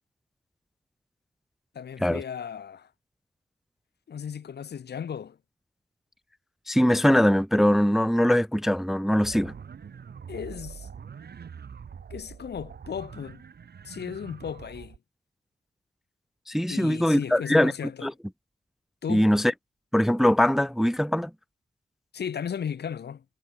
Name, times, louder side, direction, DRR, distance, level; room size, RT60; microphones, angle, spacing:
voice 1, 1.7-2.9 4.1-5.4 10.3-10.9 12.1-13.5 13.8-15.0 16.7-18.1 19.0-19.3 22.1-23.2, left 8 dB, 80° left, 1.0 m, -35 dB
voice 2, 6.7-9.5 16.5-17.7 18.0-18.1 19.1-19.5 19.9-21.3, equal, ahead, 0.3 m, -22 dB
sound 1, 9.2-15.0, right 7 dB, 70° right, 1.7 m, -44 dB
wide cardioid pair, 100°, 17 cm